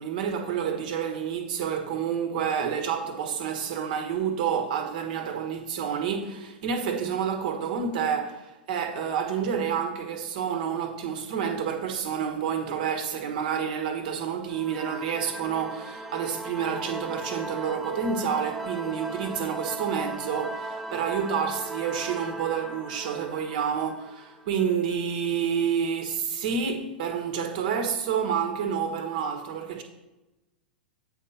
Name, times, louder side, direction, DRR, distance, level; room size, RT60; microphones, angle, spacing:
voice 1, 0.0-29.8, right 7 dB, 55° right, 1.2 m, -29 dB
sound 1, 14.5-24.9, right 2 dB, 5° right, 0.5 m, -38 dB
8.1 x 4.4 x 5.5 m
figure-of-eight pair, 100°, 5 cm